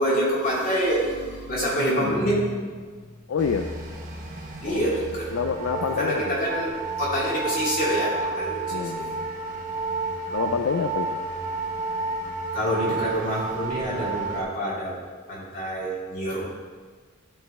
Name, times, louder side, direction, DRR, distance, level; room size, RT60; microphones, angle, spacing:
voice 1, 0.0-3.1 4.6-5.3 6.0-9.1 12.5-15.0 15.3-16.4, equal, 40° left, -7 dB, 2.5 m, -26 dB
voice 2, 3.3-3.7 4.6-6.4 8.7-9.3 10.3-11.2, left 6 dB, 70° left, 5 dB, 0.4 m, -28 dB
sound 1, 3.4-14.4, right 3 dB, 40° right, 1.1 m, -31 dB
11.5 x 4.0 x 4.2 m, 1.5 s
head